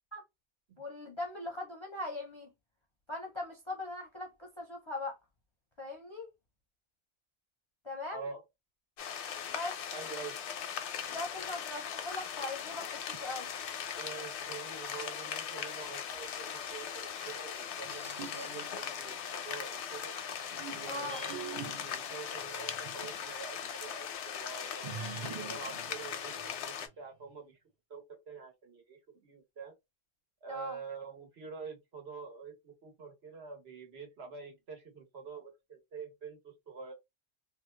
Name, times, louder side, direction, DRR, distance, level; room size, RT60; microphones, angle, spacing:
voice 1, 0.8-2.5 3.1-5.2 5.8-6.3 7.8-8.2 9.5-9.8 11.1-13.5 20.8-21.2 30.5-30.8, left 2 dB, 30° left, 0.6 m, -40 dB
voice 2, 8.1-8.4 9.9-10.4 14.0-20.2 20.7-27.6 27.9-29.7 30.4-36.9, right 5 dB, 65° right, 1.3 m, -46 dB
sound 1, 9.0-26.9, left 8 dB, 85° left, 0.9 m, -39 dB
sound 2, 17.8-19.7 20.3-23.2 23.6-23.7 24.8-26.9, right 6 dB, 35° right, 0.6 m, -46 dB
2.8 x 2.3 x 3.2 m
omnidirectional pair, 1.1 m